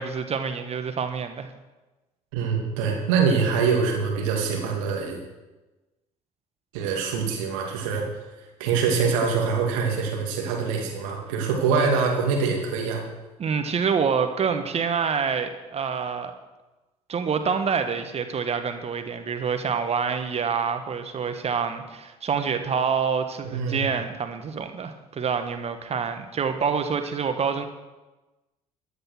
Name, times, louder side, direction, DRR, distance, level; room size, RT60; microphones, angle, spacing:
voice 1, 0.0-1.5 13.4-16.3 17.1-27.7, right 6 dB, 35° right, 7 dB, 1.5 m, -27 dB
voice 2, 2.3-5.2 6.7-8.1 8.6-13.0 23.4-23.8, right 5 dB, 70° right, 1 dB, 2.6 m, -24 dB
15.0 x 9.6 x 6.3 m, 1.1 s
figure-of-eight pair, 55°, 18 cm